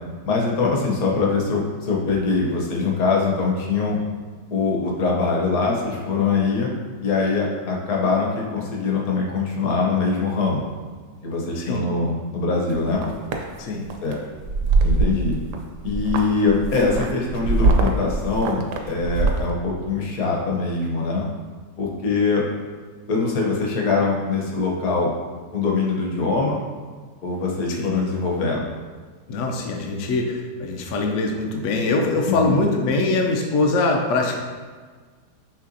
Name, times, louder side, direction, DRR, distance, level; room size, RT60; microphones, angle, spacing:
voice 1, 0.2-4.0 4.5-6.7 7.0-10.7 11.2-13.0 14.0-14.2 14.8-15.4 15.8-21.3 21.8-22.5 23.1-25.1 25.5-26.6 27.2-28.7 32.2-32.6, left 4 dB, 60° left, -1 dB, 1.1 m, -23 dB
sound 1, 12.7-13.4 13.9-14.1 14.4-15.6 15.8-19.5, right 3 dB, 75° right, 1.1 m, -22 dB
voice 2, 27.7-28.1 29.3-34.4, left 3 dB, 80° left, 2 dB, 0.7 m, -23 dB
5.6 x 3.3 x 2.6 m, 1.5 s
omnidirectional pair, 1.9 m